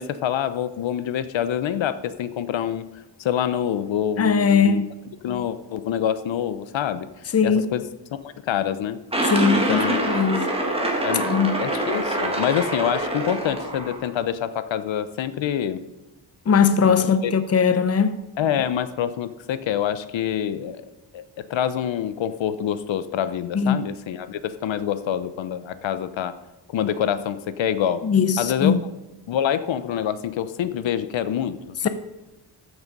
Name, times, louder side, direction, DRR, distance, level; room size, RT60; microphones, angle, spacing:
voice 1, 0.0-4.9 5.2-7.1 7.4-7.8 8.2-9.0 9.5-10.0 11.0-15.9 16.8-17.3 18.4-20.8 21.1-26.3 26.7-28.0 28.4-28.8 29.3-31.9, left 9 dB, 80° left, 0.8 m, -26 dB
voice 2, 4.2-4.9 7.3-7.6 9.2-10.5 11.2-11.6 16.5-18.2 23.5-23.8 28.0-28.8 31.8-31.9, left 6 dB, 35° left, 0.7 m, -20 dB
sound 1, 9.1-14.1, right 1 dB, 15° right, 1.9 m, -25 dB
13.5 x 6.4 x 5.3 m
wide cardioid pair, 150°, 45 cm